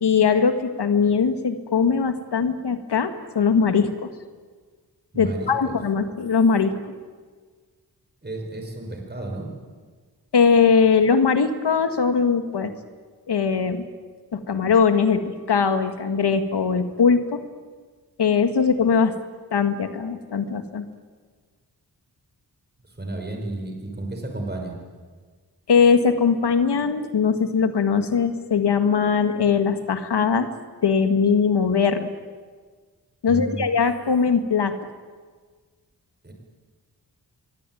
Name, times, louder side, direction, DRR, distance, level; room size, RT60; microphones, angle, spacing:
voice 1, 0.0-4.1 5.2-6.8 10.3-12.7 13.3-13.9 14.3-17.4 18.2-19.1 19.5-20.8 25.7-30.5 30.8-32.1 33.2-34.8, left 5 dB, 90° left, 8 dB, 2.0 m, -20 dB
voice 2, 5.1-5.8 8.2-9.5 22.8-24.8 33.3-33.7 36.2-36.3, right 2 dB, 25° right, 2 dB, 5.6 m, -32 dB
25.0 x 22.5 x 9.3 m, 1.5 s
wide cardioid pair, 135°, 39 cm